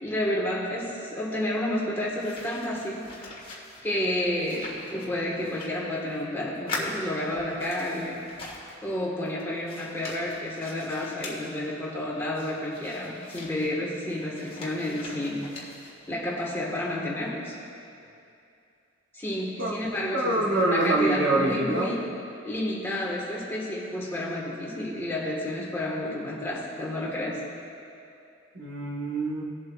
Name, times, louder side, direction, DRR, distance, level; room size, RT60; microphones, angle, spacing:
voice 1, 0.0-3.0 3.8-8.2 8.8-15.5 16.1-17.6 19.1-22.0 22.4-27.4, left 1 dB, 10° left, -4 dB, 1.4 m, -30 dB
sound 1, 2.1-6.3 6.5-8.9 9.2-11.4 12.3-16.1, left 2 dB, 25° left, 1.5 m, -42 dB
voice 2, 20.1-22.0 28.5-29.4, right 2 dB, 55° right, -4 dB, 1.5 m, -25 dB
20.0 x 7.7 x 2.4 m, 2.6 s
head